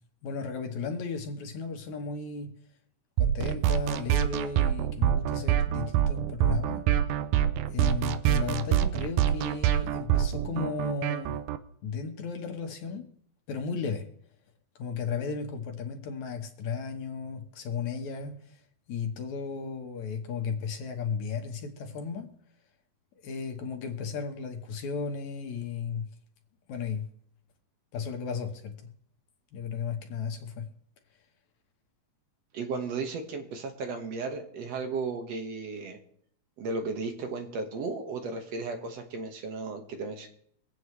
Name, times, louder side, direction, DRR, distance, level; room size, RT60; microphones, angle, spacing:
voice 1, 0.2-2.5 3.2-6.9 7.7-11.4 11.8-13.1 13.5-14.1 14.8-18.4 18.9-22.3 23.2-26.1 26.7-27.1 27.9-28.9 29.5-30.7, left 5 dB, 70° left, 2.6 m, -35 dB
sound 1, 3.2-11.6, right 11 dB, 85° right, 2.2 m, -26 dB
voice 2, 32.5-36.0 36.6-40.3, right 4 dB, 60° right, 2.5 m, -35 dB
25.0 x 8.7 x 3.2 m
omnidirectional pair, 3.6 m